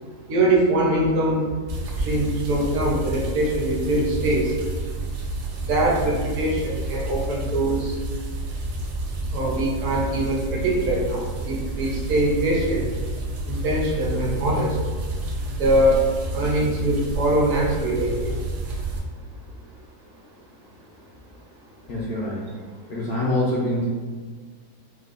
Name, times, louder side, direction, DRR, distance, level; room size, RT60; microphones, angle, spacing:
voice 1, 0.3-1.4 1.8-4.5 5.1-5.2 5.6-8.0 9.3-13.0 13.4-14.9 15.4-18.7 19.8-19.9, right 1 dB, 60° right, -3 dB, 1.0 m, -23 dB
sound 1, 1.7-19.0, right 2 dB, 85° right, 1.2 m, -30 dB
voice 2, 21.9-22.4 22.9-23.9, left 1 dB, 65° left, -7 dB, 0.6 m, -25 dB
4.7 x 2.2 x 2.4 m, 1.5 s
omnidirectional pair, 1.7 m